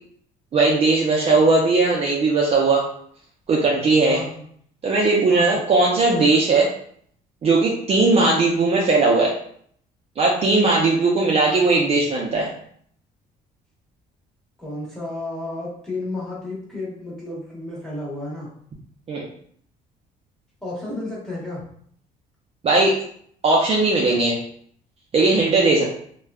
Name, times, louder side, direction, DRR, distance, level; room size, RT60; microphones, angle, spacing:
voice 1, 0.5-2.8 3.5-4.2 4.8-6.7 7.4-9.3 10.2-12.5 19.1-19.3 22.6-23.0 23.4-24.4 25.1-25.8, right 3 dB, 35° right, -3 dB, 0.5 m, -18 dB
voice 2, 4.1-4.4 5.3-5.6 14.6-18.5 20.6-21.7, left 2 dB, 5° left, -7 dB, 1.2 m, -32 dB
3.1 x 2.2 x 2.3 m, 0.62 s
cardioid pair, 110°, 17 cm